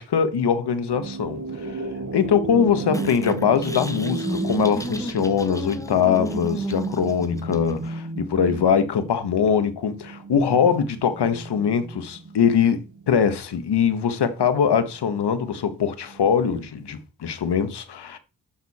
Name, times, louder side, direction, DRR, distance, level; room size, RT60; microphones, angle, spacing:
voice 1, 0.0-1.8 2.1-18.2, left 7 dB, 90° left, 1.4 m, -22 dB
sound 1, 0.9-13.2 13.6-16.6, right 3 dB, 50° right, 1.6 m, -34 dB
sound 2, 2.9-7.9, left 1 dB, 10° left, 1.2 m, -33 dB
11.5 x 6.7 x 4.3 m
cardioid pair, 70°, 39 cm